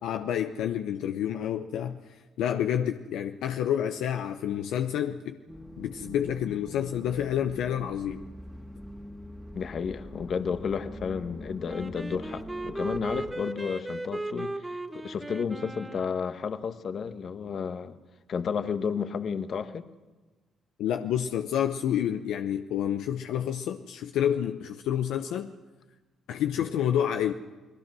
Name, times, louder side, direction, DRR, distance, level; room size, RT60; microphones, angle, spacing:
voice 1, 0.0-5.4 5.8-8.2 20.8-25.5 26.3-27.3, left 10 dB, 80° left, 6 dB, 0.8 m, -29 dB
sound 1, 5.5-13.3, equal, ahead, 2.4 m, -44 dB
voice 2, 9.5-18.0 18.3-19.9 26.6-26.7, left 6 dB, 55° left, 10 dB, 1.4 m, -32 dB
Wind instrument woodwind instrument, 11.7-16.4, right 2 dB, 15° right, 1.3 m, -37 dB
29.0 x 19.5 x 6.2 m, 1.2 s
supercardioid pair, 65°, 0 cm